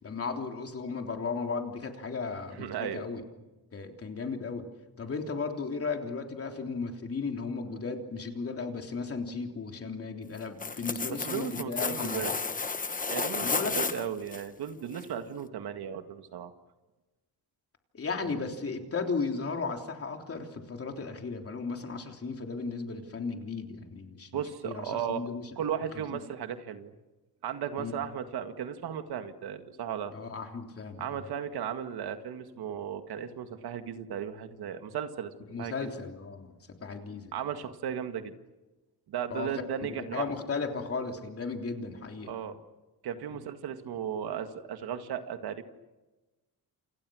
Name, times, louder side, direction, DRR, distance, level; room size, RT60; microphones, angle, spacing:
voice 1, 0.0-3.2 3.7-4.7 5.0-12.3 13.4-13.8 17.9-25.5 25.9-26.2 27.8-28.0 30.1-31.2 35.5-36.5 36.8-37.3 39.3-39.5 39.8-42.3 43.3-43.4, left 4 dB, 35° left, 4 dB, 3.5 m, -35 dB
voice 2, 2.6-3.0 11.3-12.3 13.1-16.5 18.2-18.5 24.3-25.2 25.6-26.9 27.4-30.1 31.0-35.3 35.6-35.9 37.3-38.3 39.1-40.3 42.3-42.6 43.0-45.6, right 8 dB, 80° right, 8 dB, 2.1 m, -35 dB
sound 1, 10.4-14.4 14.9-15.0, left 4 dB, 20° left, 1.1 m, -32 dB
29.0 x 28.5 x 6.4 m, 1.1 s
cardioid pair, 140°, 37 cm